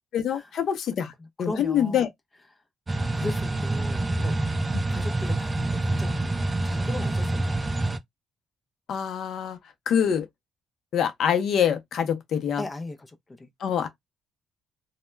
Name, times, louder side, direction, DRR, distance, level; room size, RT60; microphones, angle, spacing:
voice 1, 0.1-1.1 1.4-2.1 3.2-3.3 4.7-4.8 8.9-9.6 9.9-10.3 10.9-12.6 13.6-13.9, left 8 dB, 70° left, 0.6 m, -25 dB
voice 2, 0.9-2.1 3.2-4.4 4.9-8.0 12.6-13.5, left 2 dB, 25° left, 0.6 m, -38 dB
sound 1, 2.9-8.0, right 2 dB, 25° right, 0.3 m, -27 dB
2.2 x 2.1 x 3.1 m
cardioid pair, 90°, 0 cm